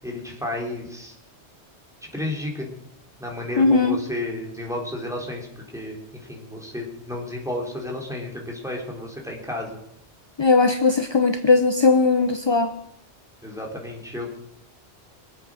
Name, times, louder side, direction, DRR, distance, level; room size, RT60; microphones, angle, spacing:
voice 1, 0.0-1.2 2.1-2.7 3.2-5.5 5.7-9.8 13.4-14.4, left 1 dB, 5° right, -1 dB, 3.6 m, -32 dB
voice 2, 3.6-4.0 10.4-12.7, left 4 dB, 30° left, 9 dB, 0.5 m, -18 dB
23.5 x 8.2 x 6.3 m, 0.76 s
omnidirectional pair, 1.2 m